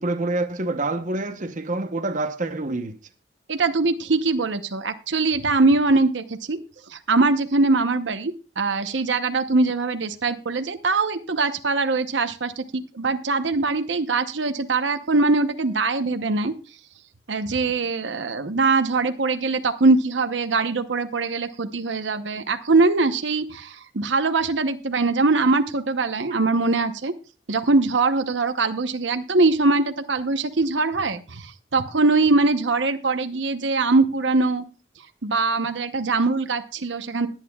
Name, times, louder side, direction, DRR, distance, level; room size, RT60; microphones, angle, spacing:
voice 1, 0.0-3.0, right 2 dB, 45° right, 0.9 m, -27 dB
voice 2, 3.5-6.6 6.9-16.5 17.3-27.1 27.5-34.6 35.2-37.3, right 3 dB, 85° right, 0.9 m, -22 dB
20.5 x 9.1 x 2.3 m
head